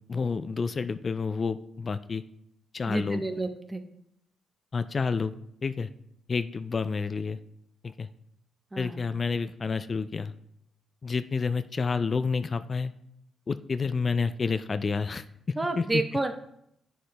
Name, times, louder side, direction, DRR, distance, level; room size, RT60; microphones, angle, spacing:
voice 1, 0.1-2.2 2.7-3.2 4.7-5.3 5.6-5.9 6.3-7.4 7.8-8.1 8.8-10.3 11.0-12.9 13.5-15.2 15.8-16.0, left 4 dB, 45° left, 12 dB, 0.4 m, -29 dB
voice 2, 2.9-3.8 8.7-9.1 15.6-16.3, right 2 dB, 20° right, 6 dB, 0.9 m, -30 dB
9.3 x 6.4 x 2.3 m, 0.74 s
supercardioid pair, 50°, 0 cm